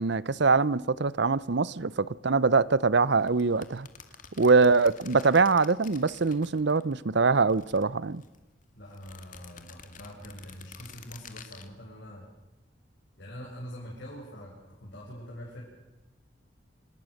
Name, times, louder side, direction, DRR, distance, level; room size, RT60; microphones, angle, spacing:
voice 1, 0.0-3.9 4.4-8.2, right 4 dB, 60° right, 0.8 m, -23 dB
sound 1, 3.2-7.0 7.3-8.4 8.9-11.7, left 6 dB, 45° left, 2.3 m, -50 dB
voice 2, 8.7-12.2 13.2-15.6, equal, 60° left, 7.5 m, -44 dB
27.5 x 20.0 x 6.6 m
head